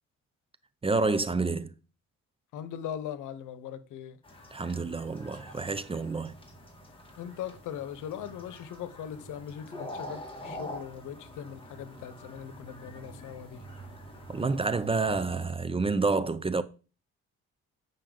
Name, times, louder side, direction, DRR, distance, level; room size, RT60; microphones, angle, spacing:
voice 1, 0.8-1.7 4.5-6.3 14.3-16.6, right 3 dB, 20° right, 0.5 m, -28 dB
voice 2, 2.5-4.2 7.2-13.6, left 9 dB, 85° left, 0.9 m, -40 dB
sound 1, 4.2-15.5, equal, 15° left, 2.2 m, -46 dB
8.8 x 5.4 x 3.8 m
cardioid pair, 90°, 30 cm